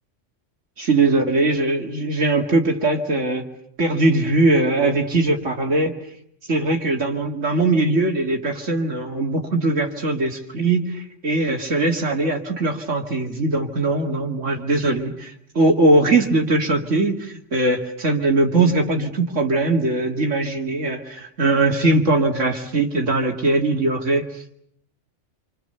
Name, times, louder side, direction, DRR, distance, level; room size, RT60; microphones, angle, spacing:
voice 1, 0.8-3.4 3.8-6.0 6.5-24.3, right 2 dB, 80° right, 1 dB, 2.7 m, -20 dB
28.0 x 26.0 x 6.9 m, 0.70 s
omnidirectional pair, 1.2 m